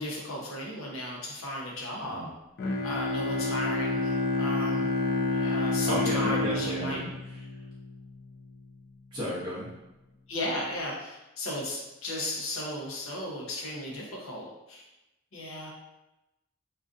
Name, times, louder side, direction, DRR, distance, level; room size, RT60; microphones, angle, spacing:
voice 1, 0.0-2.3 2.8-4.9 5.3-7.0 10.3-14.8 15.3-15.7, left 1 dB, 75° left, -2 dB, 0.7 m, -35 dB
Bowed string instrument, 2.6-8.1, left 2 dB, 50° left, 0.3 m, -29 dB
voice 2, 5.9-7.4 9.1-9.7, equal, 25° right, -11 dB, 0.6 m, -34 dB
2.5 x 2.3 x 2.3 m, 0.96 s
head